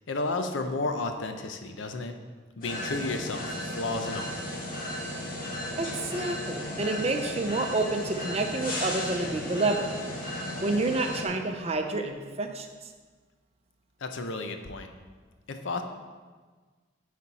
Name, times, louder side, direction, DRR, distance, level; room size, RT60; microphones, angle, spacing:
voice 1, 0.1-2.2 2.6-4.4 14.0-14.9 15.5-15.8, left 3 dB, 90° left, 6 dB, 0.7 m, -32 dB
sound 1, 2.6-11.3, left 1 dB, 50° left, 1.8 m, -35 dB
voice 2, 5.8-9.9 10.6-12.7, right 2 dB, 35° right, 5 dB, 0.6 m, -29 dB
8.8 x 4.2 x 4.2 m, 1.4 s
head